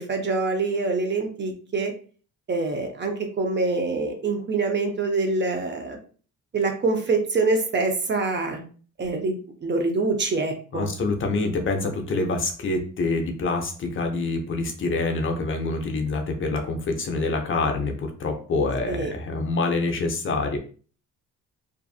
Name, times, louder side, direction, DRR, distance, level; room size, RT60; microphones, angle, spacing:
voice 1, 0.0-1.9 2.5-6.0 6.5-8.6 9.0-10.9 18.9-19.1, right 3 dB, 35° right, 4 dB, 0.6 m, -25 dB
voice 2, 10.7-20.6, left 3 dB, 40° left, 3 dB, 0.6 m, -26 dB
2.6 x 2.4 x 2.4 m, 0.41 s
cardioid pair, 85°, 32 cm